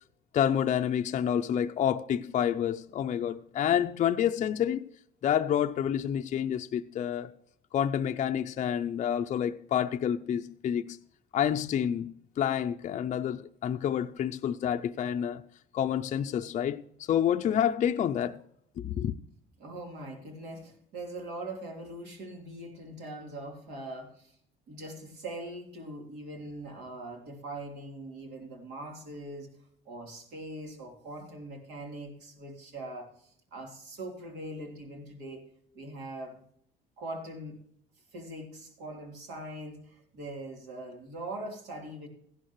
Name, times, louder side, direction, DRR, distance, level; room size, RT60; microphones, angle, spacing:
voice 1, 0.3-4.8 5.2-7.3 7.7-11.0 11.3-15.4 15.7-18.4 18.8-19.1, left 9 dB, 45° left, 0.5 m, -28 dB
voice 2, 19.6-24.4 24.7-29.5 29.8-35.4 35.7-36.4 37.0-37.6 38.1-42.1, right 1 dB, 80° right, 3.3 m, -42 dB
15.0 x 11.5 x 3.1 m
cardioid pair, 110°, 17 cm